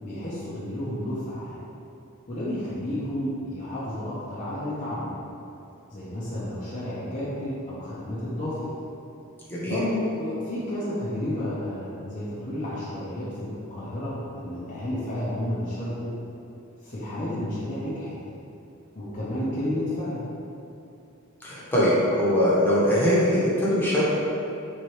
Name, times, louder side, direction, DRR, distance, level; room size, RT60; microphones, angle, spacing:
voice 1, 0.0-1.6 2.3-5.1 5.9-8.7 9.6-16.1 16.8-18.1 18.9-20.3, left 1 dB, 35° left, -10 dB, 0.7 m, -31 dB
voice 2, 21.4-24.1, equal, 10° left, -8 dB, 1.0 m, -22 dB
3.6 x 3.2 x 4.5 m, 2.8 s
head